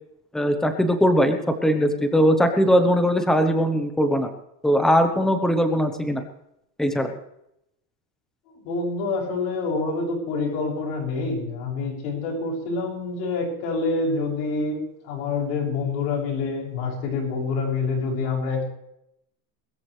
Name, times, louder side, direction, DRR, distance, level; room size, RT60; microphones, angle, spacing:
voice 1, 0.3-4.3 4.6-6.2 6.8-7.1, equal, ahead, 6 dB, 1.0 m, -20 dB
voice 2, 8.6-14.8 15.0-18.6, left 3 dB, 85° left, 0 dB, 7.2 m, -27 dB
21.5 x 14.0 x 3.3 m, 0.79 s
cardioid pair, 175°, 46 cm